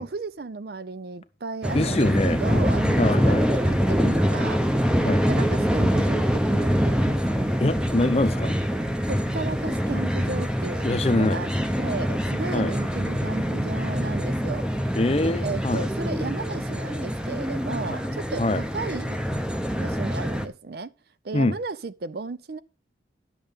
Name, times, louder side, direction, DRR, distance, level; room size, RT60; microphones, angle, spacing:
voice 1, 0.0-4.6 5.3-7.2 9.1-11.5 11.8-14.7 15.4-19.2 19.8-20.9 21.2-22.6, right 3 dB, 55° right, 0.5 m, -34 dB
sound 1, 1.6-20.5, equal, 5° right, 0.7 m, -25 dB
voice 2, 1.7-2.4 3.0-3.5 5.0-5.2 7.6-8.6 10.8-11.4 12.5-12.7 15.0-15.9 17.9-18.0 18.4-18.6 21.3-21.5, left 2 dB, 30° left, 0.7 m, -24 dB
11.0 x 6.6 x 5.2 m
head